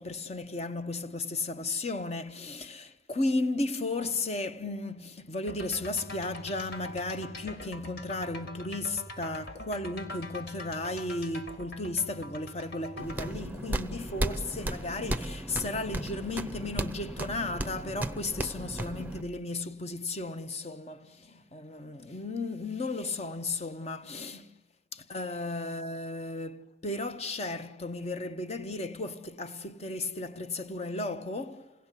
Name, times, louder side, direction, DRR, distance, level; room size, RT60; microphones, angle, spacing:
voice 1, 0.0-24.5 24.9-31.7, left 2 dB, 35° left, 0.9 m, -34 dB
sound 1, 5.5-13.3, left 1 dB, 55° left, 2.0 m, -43 dB
sound 2, 13.0-19.2, right 1 dB, 10° right, 0.7 m, -35 dB
28.5 x 18.0 x 8.3 m
head